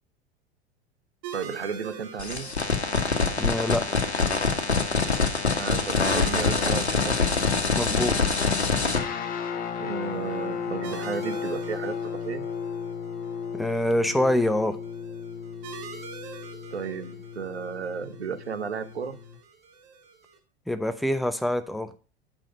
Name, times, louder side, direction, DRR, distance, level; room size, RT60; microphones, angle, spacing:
sound 1, 1.2-20.4, right 5 dB, 50° right, 1.8 m, -46 dB
voice 1, 1.3-2.6 5.6-7.2 9.8-12.5 16.7-19.2, right 6 dB, 80° right, 11 dB, 0.9 m, -33 dB
sound 2, 2.2-9.0, left 4 dB, 85° left, 1.3 m, -24 dB
voice 2, 3.4-3.8 7.8-8.2 13.5-14.8 20.7-21.9, left 1 dB, ahead, 10 dB, 0.5 m, -25 dB
sound 3, 8.9-19.4, left 6 dB, 25° left, 1.2 m, -35 dB
8.9 x 6.0 x 5.2 m, 0.35 s
figure-of-eight pair, 85°, 32 cm